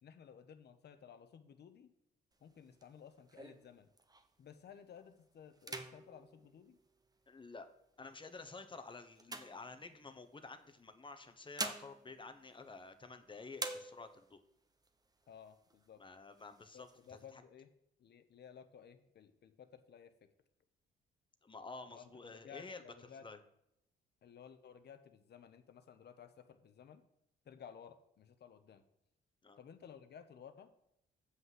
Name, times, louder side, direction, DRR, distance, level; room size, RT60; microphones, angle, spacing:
voice 1, 0.0-1.9 2.4-3.9 4.4-6.8 15.3-16.0 16.7-17.7 18.0-20.3 21.9-23.2 24.2-27.0 27.5-28.8 29.6-30.7, left 8 dB, 55° left, 9 dB, 1.1 m, -56 dB
sound 1, 2.3-4.5 5.0-5.2 5.5-7.5 8.1-10.3 11.2-13.2 13.5-14.4 14.8-14.9 15.2-15.9 16.3-17.2, right 3 dB, 20° right, 1.0 m, -47 dB
voice 2, 7.3-7.7 8.0-14.4 16.0-17.4 21.4-23.4 29.4-29.6, left 3 dB, 25° left, 9 dB, 1.1 m, -51 dB
7.8 x 5.8 x 7.6 m, 0.80 s
cardioid pair, 90°, 20 cm